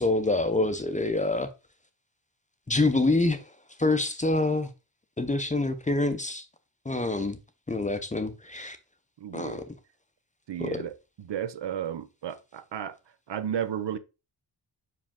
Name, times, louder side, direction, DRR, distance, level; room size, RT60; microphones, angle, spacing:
voice 1, 0.0-1.5 2.7-3.4 3.8-4.7 5.2-6.4 6.9-7.4 7.7-8.8 9.3-9.6 10.6-10.8, left 2 dB, 15° left, 0.6 m, -26 dB
voice 2, 9.2-9.6 10.5-10.9 11.2-13.0 13.3-14.0, right 9 dB, 70° right, 0.7 m, -33 dB
5.7 x 5.0 x 3.6 m
wide cardioid pair, 165°, 44 cm